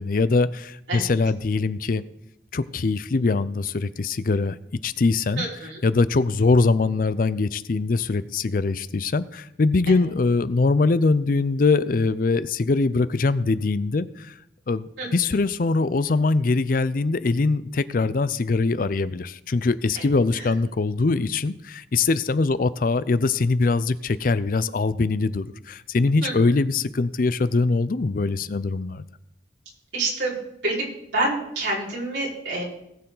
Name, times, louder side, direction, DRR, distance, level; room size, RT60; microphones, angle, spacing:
voice 1, 0.0-2.0 2.5-4.6 4.8-5.5 5.8-14.3 14.7-29.0, left 3 dB, 50° left, 0.5 m, -22 dB
voice 2, 5.3-5.8 9.9-10.1 15.0-15.4 19.9-20.0 20.3-20.5 26.2-26.3 29.9-30.3 30.6-30.9 31.1-32.6, right 2 dB, 80° right, 4.7 m, -27 dB
19.0 x 6.8 x 3.9 m
head